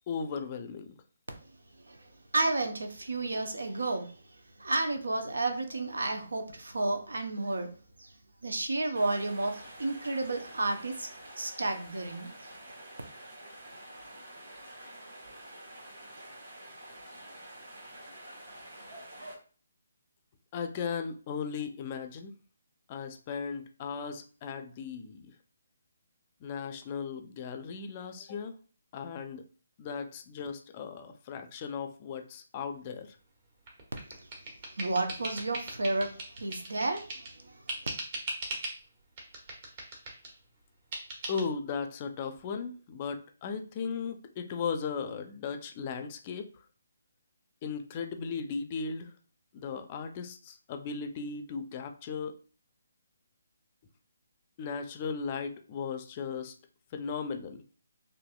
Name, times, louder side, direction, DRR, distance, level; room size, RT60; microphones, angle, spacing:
voice 1, 0.1-0.9 20.5-22.3 22.9-25.3 26.4-28.5 28.9-29.4 29.8-33.2 41.3-46.5 47.6-49.1 49.5-52.3 54.6-56.5 56.9-57.6, left 5 dB, 30° left, 6 dB, 0.4 m, -37 dB
voice 2, 1.8-7.7 8.0-8.1 8.4-11.1 11.4-12.5 34.1-34.3 34.7-37.7, right 2 dB, 80° right, 5 dB, 0.8 m, -32 dB
sound 1, 8.9-19.4, right 1 dB, 65° right, 1.5 m, -48 dB
sound 2, 33.7-37.4 37.7-38.8 39.2-40.3 40.9-41.4, right 2 dB, 40° right, 1.3 m, -39 dB
4.0 x 2.6 x 2.3 m, 0.40 s
figure-of-eight pair, 150°, 0 cm